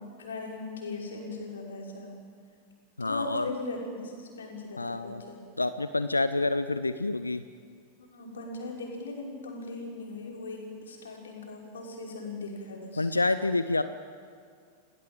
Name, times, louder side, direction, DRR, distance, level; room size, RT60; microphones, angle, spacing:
voice 1, 0.0-2.2 3.0-5.4 8.1-13.1, left 3 dB, 65° left, -1 dB, 5.7 m, -39 dB
voice 2, 3.0-3.5 4.8-5.2 5.6-7.4 13.0-13.8, left 2 dB, 80° left, 12 dB, 0.7 m, -28 dB
29.5 x 18.5 x 7.7 m, 2.1 s
figure-of-eight pair, 90°, 0 cm